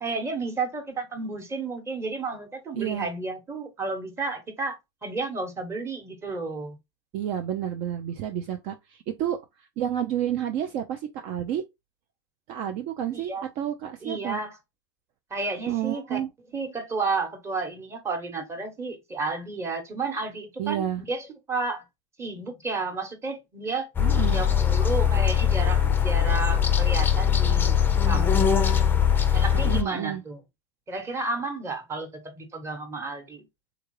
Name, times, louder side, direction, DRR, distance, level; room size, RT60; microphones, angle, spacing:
voice 1, 0.0-6.8 13.1-13.5 14.0-14.6 15.3-16.2 16.5-21.8 22.2-23.9 24.2-27.7 28.0-28.8 29.3-30.4 30.9-33.4, right 3 dB, 15° right, 1.1 m, -32 dB
voice 2, 2.7-3.1 7.1-9.4 9.8-11.6 12.5-14.4 15.7-16.3 20.6-21.0 24.0-24.4 29.5-30.2, right 10 dB, 50° right, 0.5 m, -30 dB
sound 1, 24.0-29.8, left 8 dB, 15° left, 0.5 m, -21 dB
3.7 x 2.3 x 3.1 m
hypercardioid pair, 110°, 15 cm